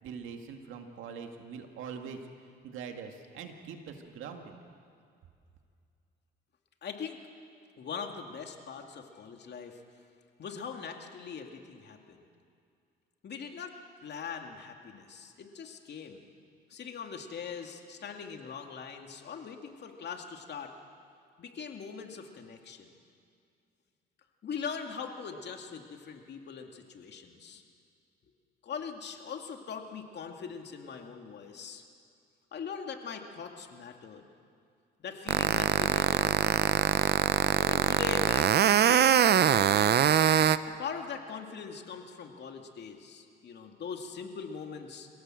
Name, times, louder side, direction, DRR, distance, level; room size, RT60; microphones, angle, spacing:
voice 1, 0.0-2.2 2.6-4.6, right 6 dB, 85° right, 4 dB, 2.1 m, -43 dB
voice 2, 6.8-7.2 7.8-9.8 10.4-12.3 13.2-13.8 14.0-16.2 16.7-20.7 21.4-22.9 24.4-27.6 28.6-31.8 32.5-34.3 35.0-36.6 37.6-40.0 40.6-45.1, left 6 dB, 60° left, 3 dB, 2.4 m, -41 dB
sound 1, 35.3-40.6, right 10 dB, 55° right, 0.7 m, -23 dB
26.0 x 17.0 x 7.8 m, 2.4 s
cardioid pair, 90°, 20 cm